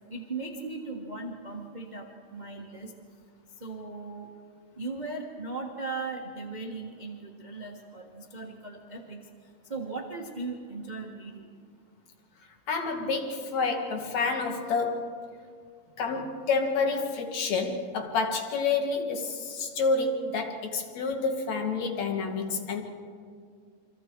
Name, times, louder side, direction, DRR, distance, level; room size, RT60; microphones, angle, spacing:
voice 1, 0.1-2.9 3.6-4.3 4.8-9.2 9.7-11.5, right 3 dB, 70° right, 1 dB, 0.4 m, -38 dB
voice 2, 12.7-15.1 16.0-22.8, left 4 dB, 60° left, 4 dB, 2.7 m, -29 dB
28.5 x 24.5 x 4.6 m, 2.2 s
omnidirectional pair, 3.7 m